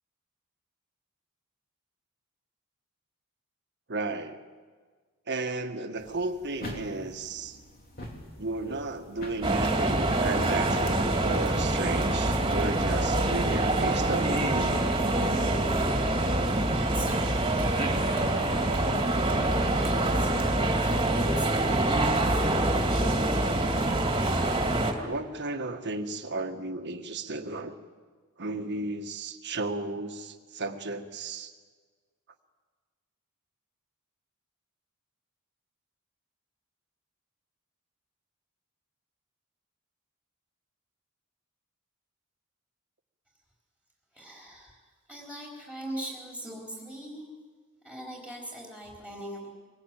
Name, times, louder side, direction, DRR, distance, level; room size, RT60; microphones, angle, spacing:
voice 1, 3.9-4.4 5.3-7.6 8.4-14.5 24.4-24.6 24.9-27.8 28.4-31.5, right 2 dB, 50° right, 6 dB, 1.7 m, -34 dB
sound 1, 6.0-11.3, left 1 dB, 45° left, 3.7 m, -45 dB
sound 2, 9.4-24.9, right 2 dB, 25° right, 2.5 m, -25 dB
voice 2, 16.2-21.9 44.1-44.8 45.1-47.3 47.8-49.5, right 1 dB, 5° left, -3 dB, 4.4 m, -41 dB
24.0 x 20.5 x 9.1 m, 1.5 s
head